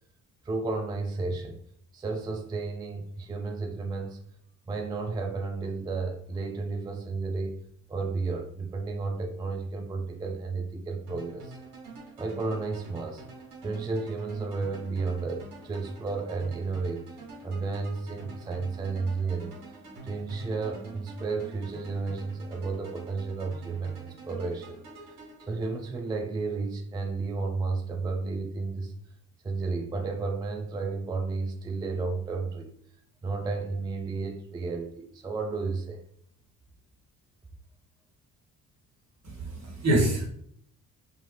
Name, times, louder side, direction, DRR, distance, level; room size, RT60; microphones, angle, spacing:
voice 1, 0.4-1.6 1.9-4.2 4.7-7.5 7.9-11.6 12.2-13.2 13.6-17.0 17.4-19.5 20.0-24.8 25.5-28.9 29.4-32.7 33.2-36.0, right 3 dB, 10° right, 4 dB, 0.3 m, -32 dB
sound 1, 11.1-26.1, right 3 dB, 65° right, 1.3 m, -46 dB
voice 2, 39.2-40.3, right 1 dB, 40° right, -1 dB, 1.3 m, -26 dB
2.3 x 2.3 x 3.2 m, 0.65 s
hypercardioid pair, 50°, 42 cm